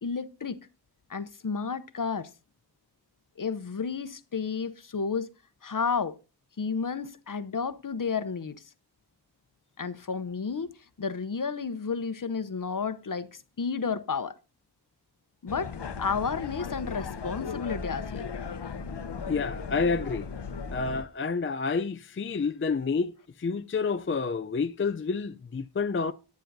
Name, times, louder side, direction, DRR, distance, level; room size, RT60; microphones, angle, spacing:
voice 1, 0.0-0.7 1.1-2.3 3.4-5.3 5.6-6.2 6.6-8.6 9.8-10.7 11.0-14.4 15.4-15.7 16.0-18.3, left 5 dB, 50° left, 0.8 m, -31 dB
sound 1, 15.5-21.0, left 5 dB, 80° left, 0.9 m, -36 dB
voice 2, 19.3-20.3 20.7-26.1, left 4 dB, 30° left, 0.5 m, -29 dB
10.5 x 10.0 x 2.7 m
wide cardioid pair, 75°, 41 cm